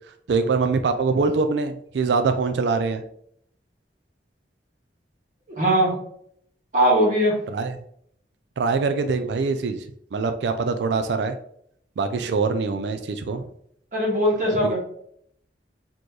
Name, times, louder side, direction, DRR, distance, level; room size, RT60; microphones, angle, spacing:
voice 1, 0.3-3.0 7.5-7.8 8.6-9.8 10.1-11.3 12.0-13.4 14.6-14.8, right 4 dB, 70° right, 8 dB, 0.4 m, -23 dB
voice 2, 5.6-5.9 6.7-7.3 13.9-14.8, equal, 45° right, -4 dB, 1.7 m, -19 dB
4.2 x 3.0 x 3.2 m, 0.67 s
head